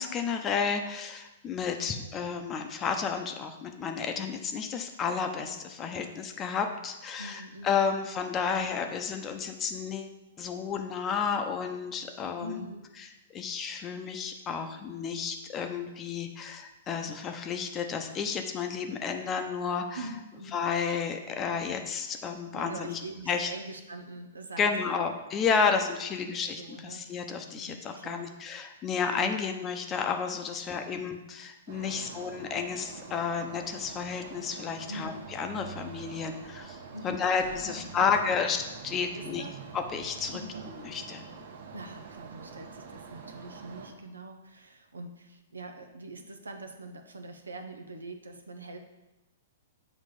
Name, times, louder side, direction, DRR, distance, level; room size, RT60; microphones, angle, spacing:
voice 1, 0.0-12.6 13.3-20.0 20.5-23.0 23.3-23.5 24.6-36.8 37.0-39.4 39.7-40.4 40.8-41.2, left 6 dB, 25° left, 5 dB, 0.7 m, -31 dB
voice 2, 7.2-8.0 12.4-12.9 19.9-20.6 22.5-25.1 25.7-25.8 26.2-27.0 27.3-28.4 29.2-29.3 30.5-30.6 31.9-32.2 34.9-35.2 36.9-37.3 37.7-38.5 39.1-39.6 40.3-40.6 41.7-48.8, right 2 dB, 90° right, 6 dB, 0.7 m, -43 dB
sound 1, 31.7-43.9, right 5 dB, 65° right, 1.2 m, -45 dB
7.5 x 3.0 x 5.3 m, 1.0 s
hypercardioid pair, 120°, 0 cm